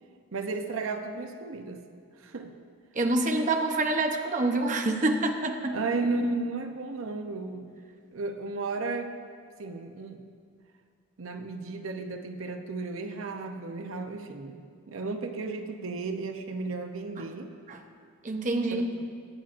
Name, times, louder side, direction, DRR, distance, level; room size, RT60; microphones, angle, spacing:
voice 1, 0.3-1.8 2.2-2.5 5.7-7.8 8.1-9.1 9.6-10.2 11.2-17.5 18.7-18.8, right 3 dB, 80° right, 6 dB, 0.7 m, -34 dB
voice 2, 2.9-5.8 17.7-17.8 18.2-19.0, right 2 dB, 40° right, 4 dB, 0.8 m, -27 dB
23.0 x 8.8 x 2.5 m, 2.2 s
head